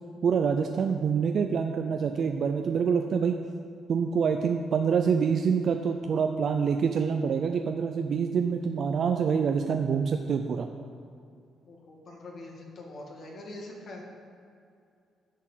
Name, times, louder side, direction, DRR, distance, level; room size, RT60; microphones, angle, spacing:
voice 1, 0.2-3.4 3.9-10.7, right 6 dB, 60° right, 5 dB, 0.5 m, -26 dB
voice 2, 11.6-14.0, left 2 dB, 60° left, -1 dB, 2.1 m, -43 dB
11.0 x 4.5 x 7.4 m, 2.4 s
cardioid pair, 90°, 0 cm